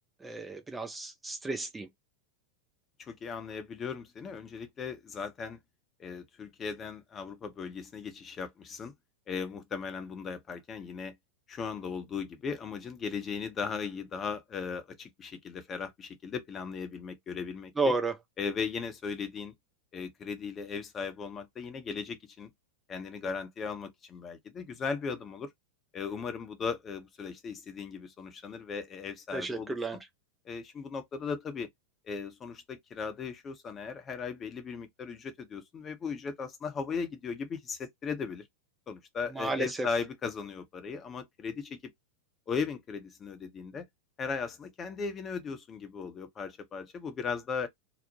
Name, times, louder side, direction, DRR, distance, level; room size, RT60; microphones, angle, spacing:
voice 1, 0.2-1.9 17.8-18.1 29.3-30.0 39.3-39.9, right 2 dB, 10° right, 0.4 m, -32 dB
voice 2, 3.0-5.6 6.0-8.9 9.3-11.1 11.5-17.9 18.4-19.5 19.9-22.5 22.9-25.5 25.9-30.0 30.5-31.7 32.0-38.4 38.9-41.8 42.5-43.9 44.2-47.7, left 5 dB, 25° left, 0.7 m, -37 dB
2.9 x 2.0 x 2.8 m
figure-of-eight pair, 90°, 0 cm